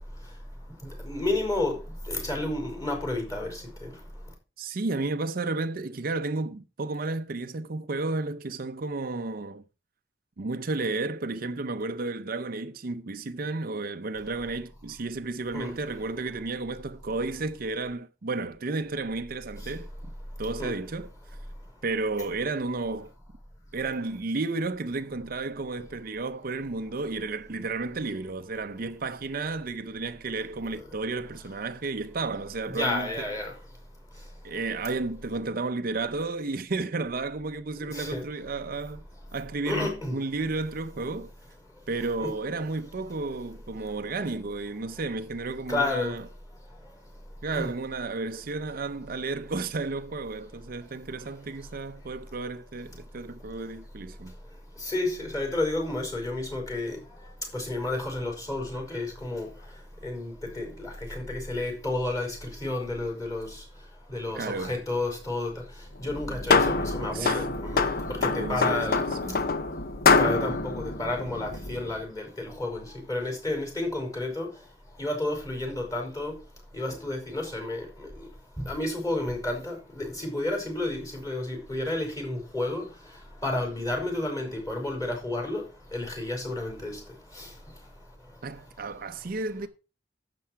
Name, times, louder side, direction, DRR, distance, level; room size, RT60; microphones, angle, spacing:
voice 1, 1.1-1.8 2.1-3.5 15.5-15.7 20.6-20.7 32.7-33.5 37.9-38.2 39.6-40.1 42.2-42.3 45.7-46.1 47.5-47.7 54.9-57.0 57.5-59.5 60.0-60.7 61.1-62.3 62.6-63.5 64.1-65.5 66.0-67.9 68.5-69.0 70.2-72.8 73.1-74.5 75.0-76.3 76.7-77.8 78.6-82.8 83.4-85.6 85.9-86.9, left 2 dB, 20° left, 4.8 m, -30 dB
voice 2, 4.6-9.6 10.4-20.1 20.4-21.1 21.8-23.1 23.7-33.3 34.4-39.0 39.3-41.3 41.9-46.3 47.4-54.3 64.3-64.8 67.1-67.5 68.2-69.4 88.4-89.7, right 3 dB, 50° right, 0.6 m, -32 dB
sound 1, 66.0-71.9, left 4 dB, 55° left, 0.9 m, -25 dB
11.5 x 7.7 x 4.6 m
head